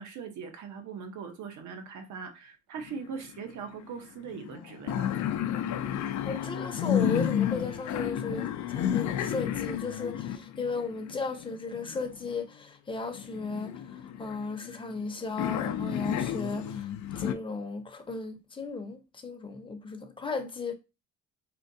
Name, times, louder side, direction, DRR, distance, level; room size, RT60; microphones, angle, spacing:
voice 1, 0.0-5.4, right 6 dB, 75° right, 0.9 m, -41 dB
sound 1, 2.8-3.5 3.8-3.9 4.2-12.4 13.1-15.0 15.4-17.3, left 10 dB, 70° left, 0.5 m, -32 dB
voice 2, 6.2-20.7, left 4 dB, 15° left, 0.7 m, -35 dB
4.4 x 2.2 x 2.6 m
cardioid pair, 90°, 30 cm